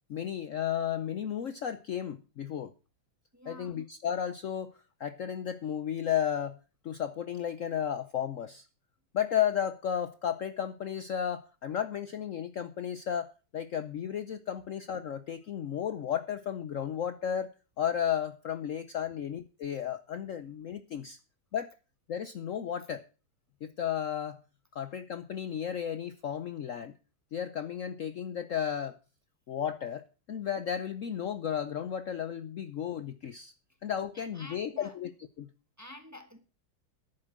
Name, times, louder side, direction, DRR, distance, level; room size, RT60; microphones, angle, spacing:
voice 1, 0.1-2.7 3.5-4.7 5.0-6.6 6.8-8.7 9.1-17.5 17.8-21.2 21.5-21.7 22.1-23.0 23.6-24.4 24.7-26.9 27.3-29.0 29.5-33.5 33.8-35.1 35.4-35.5, left 9 dB, 80° left, 11 dB, 0.7 m, -33 dB
voice 2, 3.3-3.8 34.1-35.0 35.8-36.4, left 2 dB, 10° right, 7 dB, 1.1 m, -49 dB
11.0 x 8.9 x 6.1 m, 0.34 s
omnidirectional pair, 2.3 m